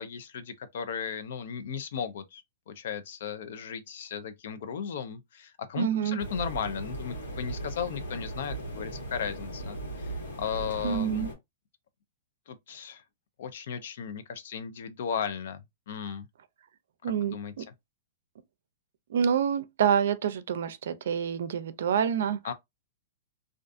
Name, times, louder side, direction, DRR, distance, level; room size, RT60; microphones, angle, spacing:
voice 1, 0.0-11.3 12.5-13.0 13.4-16.3 17.3-17.5 22.4-22.5, left 7 dB, 65° left, 0.4 m, -36 dB
voice 2, 5.8-6.2 10.8-11.3 17.0-17.6 19.1-22.4, right 8 dB, 70° right, 0.4 m, -27 dB
sound 1, 6.2-11.4, right 2 dB, 90° left, 1.3 m, -37 dB
2.4 x 2.4 x 2.4 m
hypercardioid pair, 150°, 0 cm